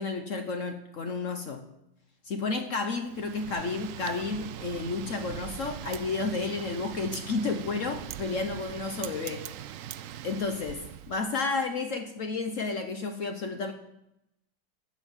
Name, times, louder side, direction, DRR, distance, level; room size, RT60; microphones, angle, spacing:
voice 1, 0.0-1.6 2.2-9.5 10.2-13.7, left 3 dB, 55° left, 6 dB, 0.9 m, -31 dB
Wind, 3.1-11.2, right 11 dB, 75° right, 0.7 m, -41 dB
9.0 x 7.0 x 7.2 m, 0.86 s
omnidirectional pair, 1.9 m